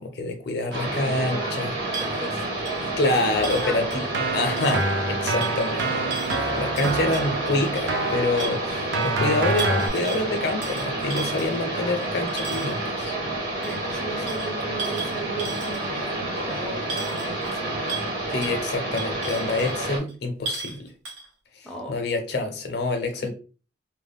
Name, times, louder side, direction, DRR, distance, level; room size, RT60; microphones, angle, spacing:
voice 1, 0.0-1.7 3.0-4.0 4.3-5.8 6.3-13.1 18.3-20.9 21.9-23.3, left 2 dB, 55° left, 0.5 m, -26 dB
voice 2, 0.7-1.6 1.9-4.0 13.6-17.9 21.6-22.0 23.2-23.3, right 2 dB, 5° left, 0.4 m, -38 dB
sound 1, 0.7-20.0, right 1 dB, 50° right, 1.2 m, -29 dB
sound 2, 1.9-4.2 4.5-4.9 5.4-8.0 8.3-9.1 9.5-10.2 10.6-12.8 13.6-16.0 16.4-16.5 16.9-17.6 17.9-18.1 18.4-18.6 19.0-19.7 20.1-20.2 20.5-20.8 21.0-21.3, right 4 dB, 90° right, 1.0 m, -36 dB
Keyboard (musical), 3.3-9.9, right 2 dB, 70° right, 0.6 m, -28 dB
2.2 x 2.0 x 3.4 m
head